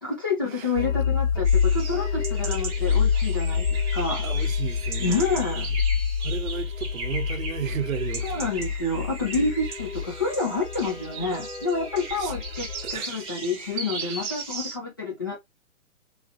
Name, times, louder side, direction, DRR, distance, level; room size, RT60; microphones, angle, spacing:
voice 1, 0.0-4.2 5.0-5.7 8.2-15.4, left 3 dB, 15° left, 0.4 m, -28 dB
sound 1, 0.8-13.0, left 6 dB, 65° left, 2.3 m, -27 dB
sound 2, 1.4-14.8, right 4 dB, 15° right, 0.8 m, -37 dB
voice 2, 4.2-5.2 6.2-8.3 12.2-12.3 12.8-13.3 14.0-14.3, right 9 dB, 70° right, 0.9 m, -34 dB
3.8 x 2.2 x 2.8 m
hypercardioid pair, 135°, 42 cm